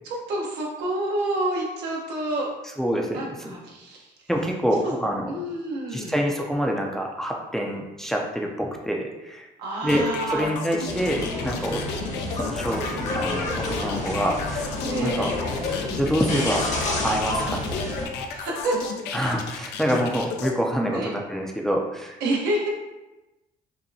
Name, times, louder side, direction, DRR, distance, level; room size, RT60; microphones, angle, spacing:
voice 1, 0.0-2.5 3.1-4.1 4.8-4.9 5.3-6.2 9.6-10.5 14.8-15.4 18.3-18.8 20.9-21.1 22.2-22.7, right 1 dB, 85° right, -2 dB, 1.0 m, -28 dB
voice 2, 2.8-3.5 4.3-5.3 5.9-9.5 9.8-10.0 10.3-11.8 12.3-12.8 13.1-13.5 13.8-14.7 15.0-15.3 16.0-16.6 17.0-17.8 19.1-22.2, equal, 5° left, 0 dB, 0.4 m, -26 dB
sound 1, 9.9-20.5, left 5 dB, 80° left, 0.5 m, -34 dB
sound 2, 10.9-18.1, left 2 dB, 40° left, 1.0 m, -29 dB
5.5 x 2.1 x 2.7 m, 1.0 s
cardioid pair, 110°, 17 cm